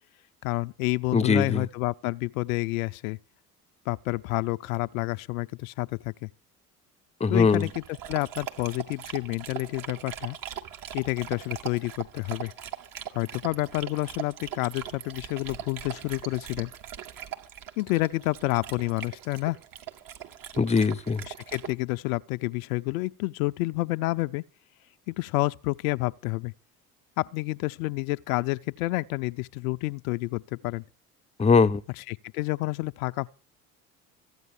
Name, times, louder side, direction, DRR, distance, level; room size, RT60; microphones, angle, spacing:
voice 1, 0.4-3.2 3.9-6.3 7.3-10.4 10.9-12.5 13.1-16.7 17.8-19.6 21.2-24.4 25.1-26.5 27.2-30.8 32.0-33.3, left 20 dB, 70° left, 0.6 m, -29 dB
voice 2, 1.1-1.6 7.2-7.7 20.6-21.2 31.4-31.8, left 5 dB, 15° left, 0.8 m, -21 dB
Dog, 7.5-21.7, right 10 dB, 50° right, 2.2 m, -40 dB
15.0 x 9.4 x 7.1 m
figure-of-eight pair, 60°, 44 cm